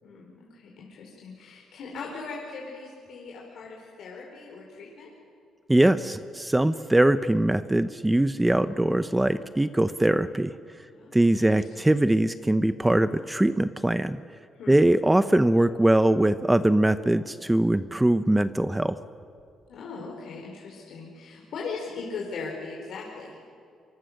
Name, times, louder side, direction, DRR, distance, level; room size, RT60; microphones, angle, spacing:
voice 1, 0.0-5.1 10.9-11.9 14.5-14.8 19.7-23.4, left 4 dB, 70° left, -2 dB, 4.5 m, -39 dB
voice 2, 5.7-10.5 11.1-14.2 14.7-19.0, right 1 dB, 10° right, 12 dB, 0.7 m, -22 dB
25.5 x 24.5 x 6.6 m, 2.4 s
cardioid pair, 90°, 0 cm